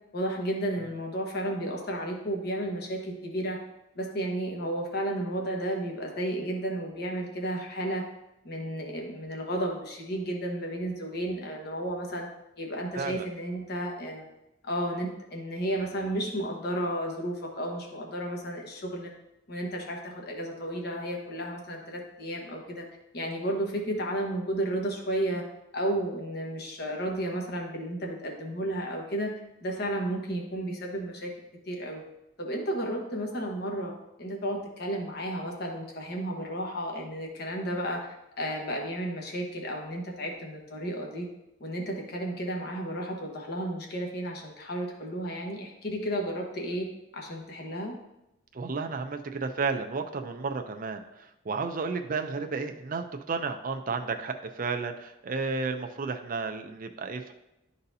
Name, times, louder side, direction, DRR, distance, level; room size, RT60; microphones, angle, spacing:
voice 1, 0.1-3.6 4.0-8.0 8.4-12.3 12.6-14.3 14.6-19.1 19.5-22.8 23.1-25.4 25.7-29.3 29.6-31.3 31.7-32.0 32.4-33.9 34.2-38.0 38.4-41.3 41.6-46.9 47.1-47.9, right 1 dB, 55° left, 0 dB, 1.2 m, -32 dB
voice 2, 12.9-13.3 48.5-57.3, right 4 dB, 45° right, 6 dB, 0.5 m, -32 dB
11.5 x 4.1 x 2.7 m, 0.89 s
head